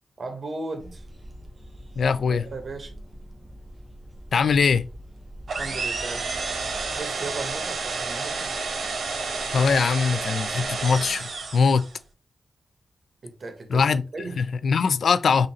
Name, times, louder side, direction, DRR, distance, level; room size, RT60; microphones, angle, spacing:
voice 1, 0.2-1.1 2.3-2.9 5.6-6.4 6.9-8.5 13.2-14.5, right 3 dB, 50° right, 1.2 m, -36 dB
sound 1, 0.8-7.0, equal, 15° right, 1.0 m, -44 dB
voice 2, 2.0-2.5 4.3-4.9 9.5-11.8 13.7-14.0 14.4-15.5, left 5 dB, 80° left, 0.4 m, -21 dB
sound 2, 5.5-12.0, right 4 dB, 70° right, 0.9 m, -30 dB
3.8 x 2.6 x 4.2 m
wide cardioid pair, 100°, 0 cm